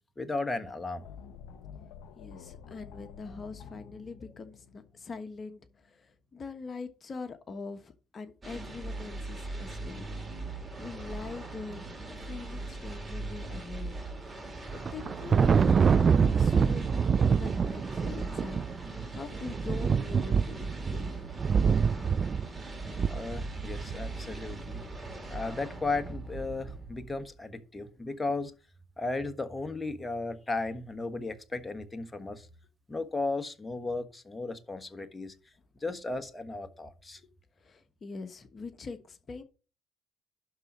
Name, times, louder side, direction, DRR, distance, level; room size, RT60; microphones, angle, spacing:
voice 1, 0.2-1.1 23.1-24.8 25.3-28.5 29.0-32.5 32.9-35.3 35.8-37.2, left 3 dB, 20° left, 1.4 m, -35 dB
sound 1, 1.0-6.0, left 7 dB, 75° left, 0.9 m, -49 dB
voice 2, 2.2-10.1 10.4-11.9 12.2-13.9 14.2-14.5 14.9-16.9 17.3-20.6 20.9-21.5 28.0-28.1 37.6-39.4, left 4 dB, 40° left, 1.2 m, -43 dB
sound 2, 8.4-27.4, right 2 dB, 20° right, 2.7 m, -40 dB
Thunder, 14.7-24.1, right 6 dB, 40° right, 0.3 m, -26 dB
12.0 x 4.0 x 6.2 m
supercardioid pair, 65°, 0 cm